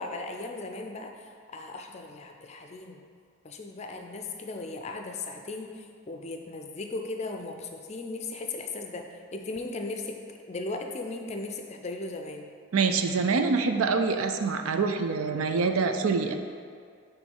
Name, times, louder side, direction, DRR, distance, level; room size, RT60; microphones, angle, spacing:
voice 1, 0.0-3.0 3.4-12.5, left 3 dB, 30° left, 4 dB, 0.4 m, -37 dB
voice 2, 12.7-16.3, right 4 dB, 85° right, 7 dB, 0.4 m, -25 dB
6.2 x 3.1 x 5.3 m, 2.1 s
head